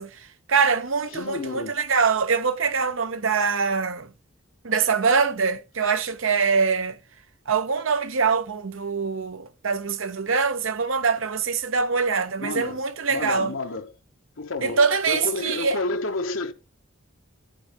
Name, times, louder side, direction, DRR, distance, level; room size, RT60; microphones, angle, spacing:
voice 1, 0.0-4.1 4.6-7.0 7.5-13.5 14.6-15.8, right 5 dB, 85° right, 0.9 m, -24 dB
voice 2, 1.1-1.8 12.4-12.8 13.1-13.9 14.4-16.5, left 3 dB, 90° left, 1.2 m, -30 dB
12.5 x 4.5 x 5.0 m
head